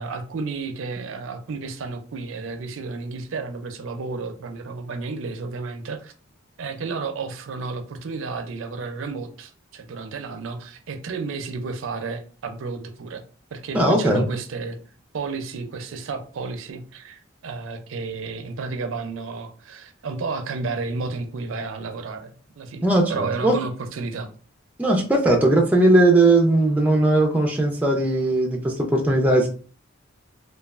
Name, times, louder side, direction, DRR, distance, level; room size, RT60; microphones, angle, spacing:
voice 1, 0.0-6.1 6.6-13.2 13.5-14.8 15.1-24.3, right 4 dB, 80° right, 0.4 m, -32 dB
voice 2, 13.7-14.3 22.8-23.6 24.8-29.5, right 2 dB, 5° right, 0.4 m, -18 dB
3.1 x 2.2 x 2.3 m
head